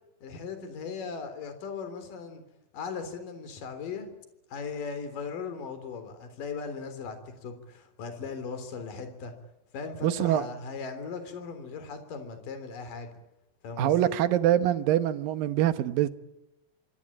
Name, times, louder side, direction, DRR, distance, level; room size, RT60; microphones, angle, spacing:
voice 1, 0.2-2.4 2.7-4.1 4.5-9.4 9.7-13.1 13.6-14.2, left 5 dB, 55° left, 5.0 m, -38 dB
voice 2, 10.0-10.5 13.8-16.1, right 12 dB, 70° right, 2.6 m, -24 dB
27.0 x 25.0 x 8.8 m
omnidirectional pair, 4.7 m